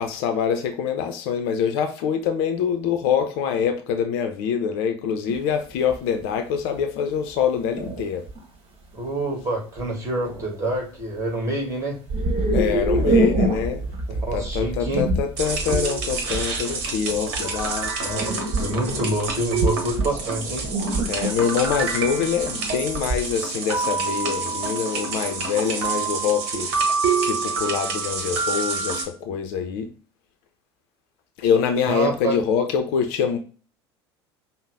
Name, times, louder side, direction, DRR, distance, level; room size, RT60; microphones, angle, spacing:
voice 1, 0.0-8.2 12.5-18.2 21.1-26.7 27.2-29.9 31.4-33.4, left 7 dB, 55° left, 7 dB, 0.6 m, -25 dB
sound 1, 5.3-5.4 5.9-6.1 6.8-6.9 7.8-8.4 9.8-9.9 10.2-10.6 12.1-23.3, right 2 dB, 40° right, 1.3 m, -26 dB
voice 2, 8.9-12.0 14.2-15.1 18.0-20.7 31.9-32.4, right 1 dB, 20° right, 0 dB, 1.8 m, -27 dB
sound 2, 15.4-29.0, right 5 dB, 60° right, 1.0 m, -27 dB
5.4 x 2.1 x 3.5 m, 0.38 s
figure-of-eight pair, 70°, 14 cm